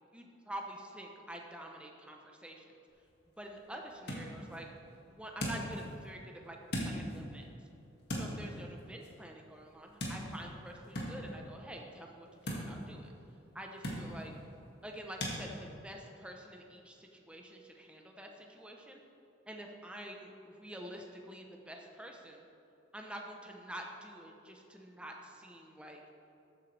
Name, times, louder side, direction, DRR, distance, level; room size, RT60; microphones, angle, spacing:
voice 1, 0.1-2.7 3.4-4.7 5.1-7.4 8.2-13.1 13.5-14.3 14.8-19.0 19.5-22.4 22.9-26.0, right 1 dB, 5° right, 1 dB, 0.8 m, -47 dB
sound 1, 2.9-15.4, equal, 60° left, 2.0 m, -43 dB
14.0 x 8.9 x 3.3 m, 2.8 s
head